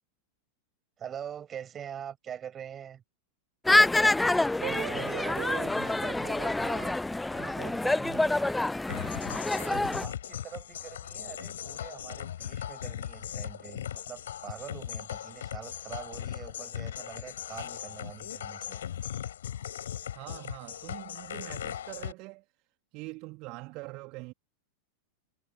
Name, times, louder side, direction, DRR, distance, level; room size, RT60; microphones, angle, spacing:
voice 1, 1.0-3.0 9.4-18.8, right 9 dB, 25° right, 7.3 m, -44 dB
sound 1, 3.6-10.0, left 2 dB, 5° left, 0.3 m, -27 dB
voice 2, 4.6-8.6 20.1-22.4 22.9-24.3, right 25 dB, 40° right, 3.0 m, -41 dB
sound 2, 8.9-22.1, left 10 dB, 65° left, 5.5 m, -39 dB
figure-of-eight pair, 90°, 0 cm